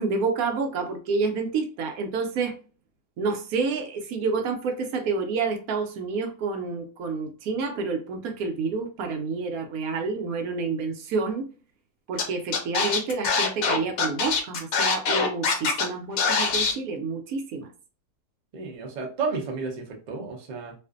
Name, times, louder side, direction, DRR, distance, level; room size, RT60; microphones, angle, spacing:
voice 1, 0.0-2.6 3.2-11.5 12.1-17.7, right 4 dB, 70° right, 4 dB, 1.0 m, -29 dB
Scratching (performance technique), 12.2-12.3 12.5-15.8 16.2-16.7, left 5 dB, 65° left, 0.7 m, -23 dB
voice 2, 18.5-20.7, right 4 dB, 90° right, 0 dB, 0.3 m, -32 dB
2.5 x 2.4 x 2.3 m, 0.36 s
omnidirectional pair, 1.7 m